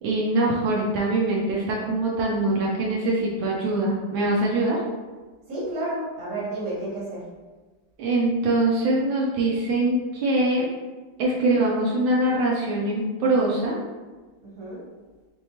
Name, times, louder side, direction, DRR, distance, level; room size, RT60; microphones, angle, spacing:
voice 1, 0.0-4.8 8.0-10.7 11.2-13.8, right 2 dB, 85° right, -3 dB, 1.4 m, -23 dB
voice 2, 5.5-7.2 14.4-14.9, right 1 dB, 50° right, -6 dB, 1.6 m, -31 dB
3.5 x 3.4 x 2.8 m, 1.3 s
omnidirectional pair, 2.1 m